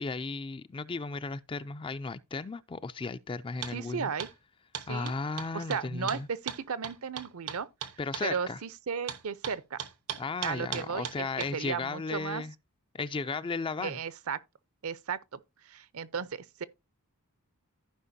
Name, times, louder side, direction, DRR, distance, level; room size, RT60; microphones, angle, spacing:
voice 1, 0.0-4.1 4.9-6.3 8.0-8.6 10.2-12.5 12.9-14.0, left 4 dB, 25° left, 0.4 m, -35 dB
sound 1, 3.6-3.8 4.2-4.3 4.7-8.3 9.1-11.5, right 9 dB, 90° right, 1.0 m, -38 dB
voice 2, 3.7-4.3 4.9-5.1 5.5-7.7 8.2-9.8 10.4-11.3 11.5-12.4 13.8-14.4 14.8-16.6, right 6 dB, 70° right, 0.6 m, -35 dB
15.0 x 5.1 x 2.7 m
head